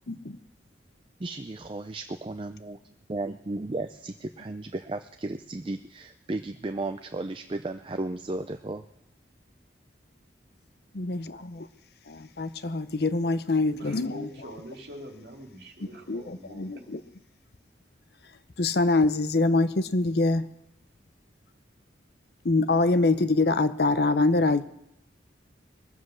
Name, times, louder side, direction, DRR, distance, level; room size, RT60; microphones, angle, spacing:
voice 1, 1.2-2.8 3.1-8.8, right 2 dB, 25° right, 8 dB, 0.4 m, -34 dB
voice 2, 10.9-11.7 12.1-14.3 16.1-17.0 18.6-20.5 22.4-24.6, left 3 dB, 60° left, 12 dB, 0.7 m, -24 dB
voice 3, 13.7-16.9, equal, 60° right, 2 dB, 2.4 m, -44 dB
21.5 x 7.6 x 6.3 m, 0.82 s
head